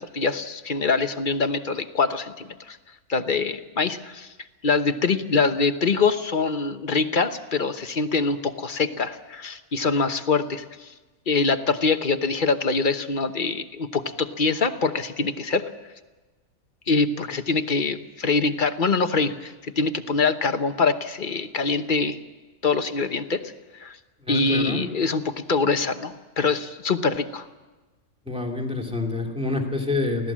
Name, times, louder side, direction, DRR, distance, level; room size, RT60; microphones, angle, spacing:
voice 1, 0.0-2.8 3.1-4.3 4.6-10.9 11.3-15.7 16.9-22.2 22.6-23.4 23.8-24.0 24.3-27.5, left 4 dB, 40° left, 9 dB, 1.0 m, -24 dB
voice 2, 24.2-24.9 28.3-30.3, left 2 dB, 5° right, 1 dB, 2.6 m, -27 dB
24.5 x 17.0 x 7.4 m, 1.2 s
omnidirectional pair, 1.5 m